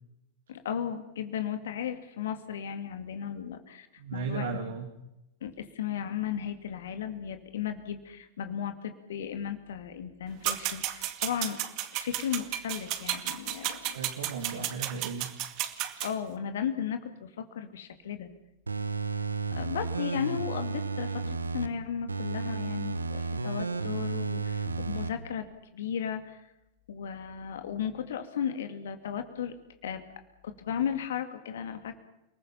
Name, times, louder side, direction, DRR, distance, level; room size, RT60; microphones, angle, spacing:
voice 1, 0.5-3.9 4.1-4.6 5.4-11.6 11.9-14.0 14.5-14.6 16.0-18.3 19.5-25.5 25.7-26.5 26.9-29.6 29.8-30.0 30.4-32.0, left 8 dB, 60° left, 8 dB, 2.5 m, -35 dB
voice 2, 4.0-4.9 13.9-15.3, right 5 dB, 60° right, 4 dB, 2.7 m, -35 dB
sound 1, 10.4-16.1, right 13 dB, 40° right, 2.1 m, -33 dB
sound 2, 18.7-21.7 22.1-25.1 25.5-25.6, right 4 dB, 80° right, 1.3 m, -32 dB
29.5 x 20.5 x 5.9 m, 0.89 s
figure-of-eight pair, 90°, 0 cm